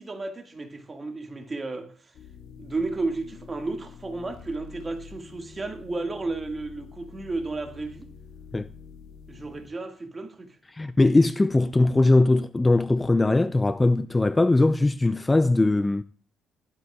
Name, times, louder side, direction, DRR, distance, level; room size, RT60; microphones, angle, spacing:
voice 1, 0.0-2.1 2.6-8.1 9.3-10.6, right 3 dB, 25° right, 1.8 m, -33 dB
sound 1, 2.1-9.7, left 6 dB, 90° left, 1.7 m, -47 dB
voice 2, 10.7-16.0, left 2 dB, 20° left, 0.4 m, -20 dB
16.0 x 11.0 x 2.3 m
cardioid pair, 90°, 0 cm